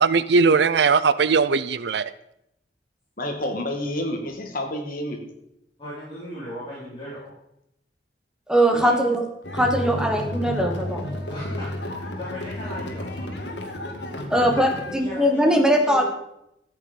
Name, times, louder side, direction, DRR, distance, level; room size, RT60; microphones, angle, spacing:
voice 1, 0.0-2.0, right 5 dB, 70° right, 16 dB, 0.5 m, -19 dB
voice 2, 3.2-5.2 8.7-9.0, left 1 dB, 50° left, 2 dB, 2.1 m, -29 dB
voice 3, 5.8-7.3 10.0-10.2 11.3-13.3 14.2-14.3 14.8-16.0, equal, 25° left, -10 dB, 4.2 m, -37 dB
voice 4, 8.5-9.2 9.5-11.0 14.3-16.0, equal, 5° right, 3 dB, 1.3 m, -20 dB
sound 1, 9.4-14.9, left 1 dB, 70° left, 1.9 m, -31 dB
13.5 x 8.1 x 5.4 m, 0.80 s
head